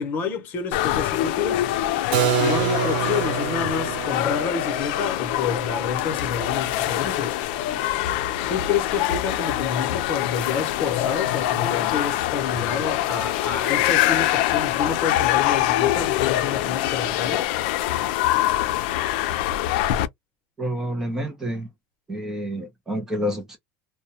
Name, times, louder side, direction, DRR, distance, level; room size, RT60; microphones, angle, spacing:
voice 1, 0.0-1.7 2.4-7.4 8.5-17.5, left 6 dB, 40° left, 0.8 m, -29 dB
sound 1, 0.7-20.1, left 14 dB, 80° left, 0.4 m, -24 dB
Keyboard (musical), 2.1-7.7, right 14 dB, 80° right, 0.3 m, -29 dB
voice 2, 20.6-21.7 22.1-23.6, equal, 10° right, 0.5 m, -28 dB
2.2 x 2.1 x 2.7 m
cardioid pair, 170°, 5 cm